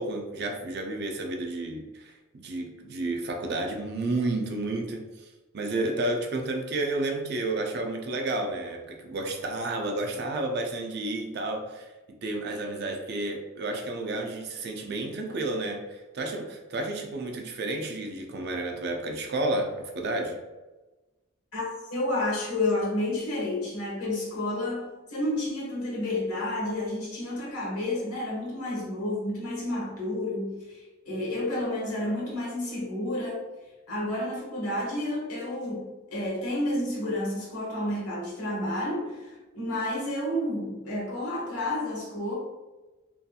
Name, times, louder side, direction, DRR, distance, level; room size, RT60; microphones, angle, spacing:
voice 1, 0.0-20.4, right 2 dB, 50° right, 3 dB, 0.4 m, -31 dB
voice 2, 21.5-30.6 31.0-33.4 33.9-42.3, left 1 dB, 90° left, -4 dB, 1.1 m, -30 dB
2.7 x 2.6 x 2.2 m, 1.2 s
head